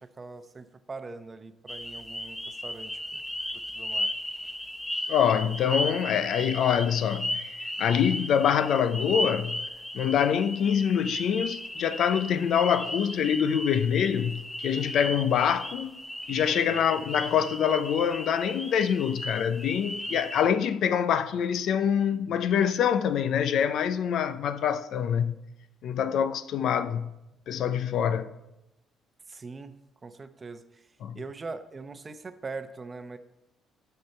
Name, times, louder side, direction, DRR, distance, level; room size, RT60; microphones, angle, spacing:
voice 1, 0.0-3.2 3.7-4.1 16.7-17.0 29.3-29.7 30.0-33.2, right 3 dB, 30° right, 0.7 m, -42 dB
sound 1, 1.7-20.4, left 1 dB, 10° left, 0.8 m, -35 dB
voice 2, 5.1-9.7 9.9-15.9 16.3-25.3 25.8-27.1 27.5-28.3 31.0-31.2, left 8 dB, 70° left, 0.5 m, -25 dB
12.0 x 5.7 x 4.4 m
cardioid pair, 100°, 0 cm